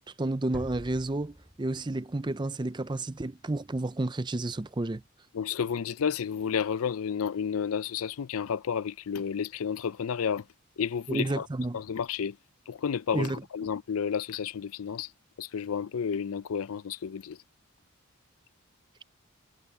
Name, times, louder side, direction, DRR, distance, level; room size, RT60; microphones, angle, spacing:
voice 1, 0.2-5.0 11.1-11.8 13.1-13.4, right 2 dB, 20° right, 0.5 m, -31 dB
sound 1, 0.5-3.4, equal, ahead, 5.4 m, -47 dB
voice 2, 5.3-10.4 10.8-11.5 11.7-12.4 12.7-13.3 13.5-15.1 15.4-17.4, left 7 dB, 75° left, 0.5 m, -31 dB
head